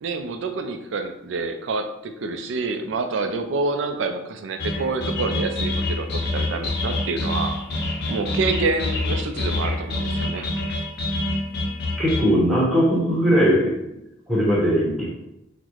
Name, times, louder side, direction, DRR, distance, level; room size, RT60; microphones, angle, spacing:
voice 1, 0.0-7.5 8.1-10.5, right 3 dB, 70° right, 7 dB, 0.4 m, -27 dB
sound 1, 4.6-12.2, left 2 dB, 55° left, 0.6 m, -26 dB
voice 2, 12.0-13.9 14.3-15.1, equal, ahead, -5 dB, 0.8 m, -19 dB
3.9 x 2.1 x 3.0 m, 0.90 s
head